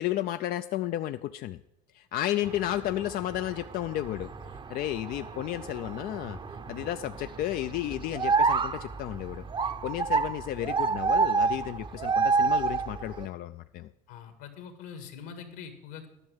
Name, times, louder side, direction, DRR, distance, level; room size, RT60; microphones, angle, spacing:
voice 1, 0.0-1.6 1.9-6.4 6.7-13.9, left 13 dB, 45° left, 10 dB, 0.4 m, -33 dB
sound 1, 2.4-13.3, right 4 dB, 25° right, 0.7 m, -30 dB
voice 2, 14.1-16.1, left 7 dB, 70° left, 7 dB, 2.0 m, -43 dB
10.5 x 6.2 x 7.7 m, 0.90 s
supercardioid pair, 90°, 21 cm